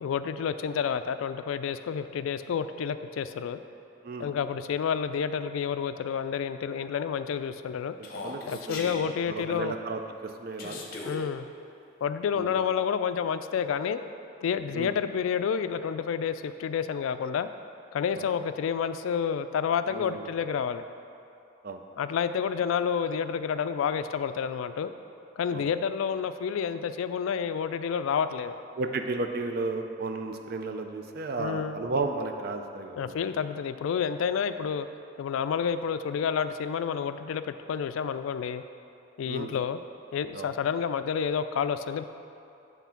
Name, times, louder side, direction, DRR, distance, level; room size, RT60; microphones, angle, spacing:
voice 1, 0.0-3.6 4.2-7.9 8.5-9.7 11.0-11.5 12.0-14.0 14.4-17.5 17.9-20.8 22.0-24.9 25.4-28.6 31.4-31.8 32.9-34.9 35.2-38.6 39.2-39.8 40.1-42.0, left 7 dB, 90° left, 11 dB, 0.3 m, -29 dB
Human voice, 8.0-9.0 10.6-11.2, left 2 dB, 50° left, 0.8 m, -38 dB
voice 2, 8.0-8.4 8.7-8.9 9.2-10.9 12.3-12.5 14.7-14.9 18.1-18.3 19.9-20.3 21.6-21.8 25.5-25.6 28.8-33.2 39.3-39.5 40.3-40.5, right 3 dB, 50° right, 5 dB, 0.5 m, -33 dB
8.2 x 3.6 x 5.7 m, 2.6 s
head